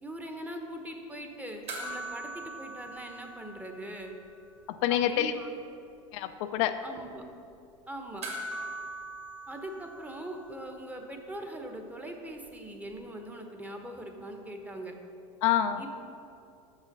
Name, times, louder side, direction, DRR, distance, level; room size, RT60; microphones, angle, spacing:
voice 1, 0.0-4.1 4.9-5.5 6.8-7.3 7.9-8.3 9.5-14.9 15.8-15.9, right 1 dB, 10° right, 3 dB, 0.9 m, -41 dB
sound 1, 1.7-4.3 4.6-4.7 8.2-10.8 13.0-13.1, right 2 dB, 35° right, 1.6 m, -41 dB
voice 2, 4.7-5.3 6.1-6.8 15.4-15.9, left 11 dB, 65° left, 9 dB, 0.4 m, -27 dB
5.9 x 5.6 x 5.9 m, 2.7 s
hypercardioid pair, 100°, 17 cm